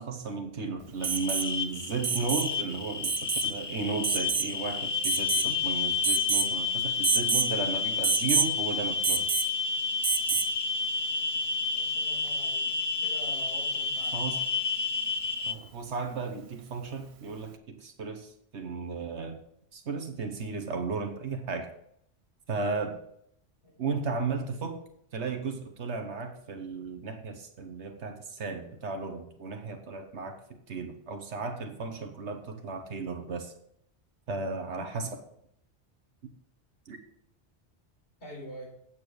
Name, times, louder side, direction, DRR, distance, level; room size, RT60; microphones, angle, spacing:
voice 1, 0.0-9.3 10.3-10.4 14.1-14.4 15.4-19.4 19.7-21.7 22.5-23.0 23.8-24.8 25.1-33.5 34.3-35.2 36.2-36.3 36.9-37.0, right 4 dB, 80° right, 6 dB, 1.3 m, -35 dB
sound 1, 1.0-15.5, left 4 dB, 30° left, 0.6 m, -30 dB
Alarm, 1.0-1.5 2.0-2.5 3.0-3.5 4.0-4.5 5.0-5.6 6.0-6.5 7.0-7.5 8.0-8.5 9.0-9.5 10.0-10.5 12.3-12.4, right 6 dB, 55° right, 0.3 m, -28 dB
voice 2, 11.7-14.2 23.6-23.9 34.7-34.9 38.2-38.7, equal, 70° left, -3 dB, 4.6 m, -46 dB
8.8 x 7.3 x 6.3 m, 0.72 s
omnidirectional pair, 1.2 m